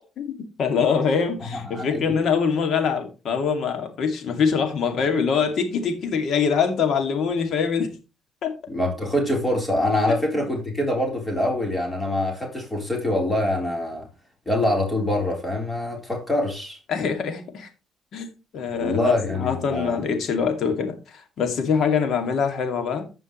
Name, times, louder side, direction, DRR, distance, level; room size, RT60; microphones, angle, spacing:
voice 1, 0.2-7.9 8.4-8.6 10.1-10.2 16.9-17.7 18.1-23.1, left 6 dB, 70° left, 2.4 m, -24 dB
voice 2, 1.5-2.2 8.7-14.1 14.5-16.8 18.7-20.0, left 1 dB, 15° left, 3.9 m, -25 dB
15.5 x 5.5 x 3.2 m
cardioid pair, 90°, 0 cm